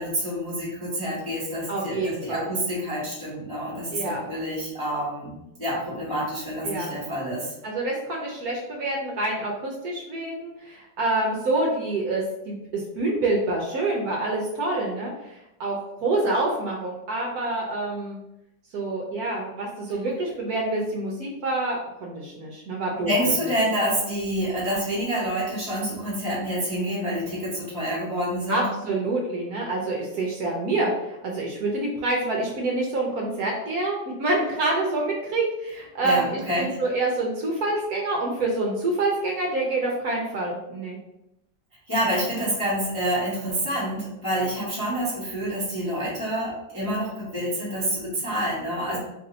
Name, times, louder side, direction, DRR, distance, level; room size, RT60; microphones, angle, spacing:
voice 1, 0.0-5.3 5.6-7.5 23.0-28.7 36.0-36.8 41.9-49.0, equal, 15° left, -10 dB, 0.9 m, -27 dB
voice 2, 1.7-2.5 3.9-4.2 6.6-6.9 7.6-18.2 18.7-23.1 28.5-41.0, right 2 dB, 65° right, -2 dB, 1.0 m, -27 dB
3.3 x 2.6 x 3.9 m, 0.87 s
omnidirectional pair, 1.9 m